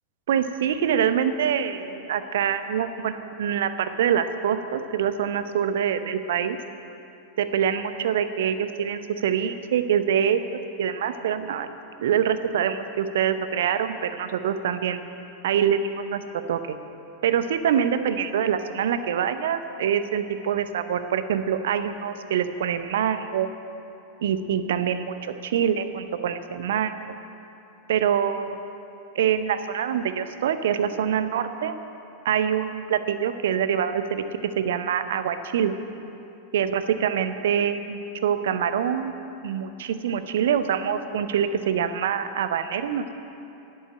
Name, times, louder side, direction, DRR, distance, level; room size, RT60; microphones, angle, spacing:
voice 1, 0.3-6.6 7.4-11.7 12.0-15.0 15.4-16.8 17.2-23.5 24.2-27.2 27.9-28.6 29.1-31.7 32.2-34.2 34.6-35.7 36.5-43.1, right 8 dB, 60° right, 10 dB, 0.8 m, -25 dB
11.5 x 11.0 x 8.4 m, 2.9 s
figure-of-eight pair, 90°, 0 cm